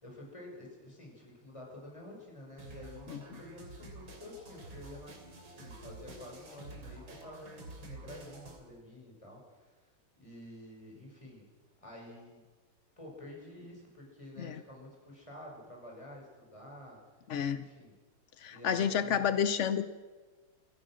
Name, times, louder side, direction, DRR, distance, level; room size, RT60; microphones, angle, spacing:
voice 1, 0.0-5.1 5.4-9.8 10.1-11.4 11.8-12.4 13.0-17.0 17.5-17.9 18.5-19.4, left 1 dB, 15° left, -2 dB, 6.1 m, -49 dB
sound 1, 2.6-8.6, right 2 dB, 65° right, 3.9 m, -49 dB
voice 2, 17.3-17.6 18.4-19.9, left 8 dB, 75° left, 12 dB, 0.6 m, -30 dB
27.0 x 15.0 x 6.3 m, 1.3 s
omnidirectional pair, 2.3 m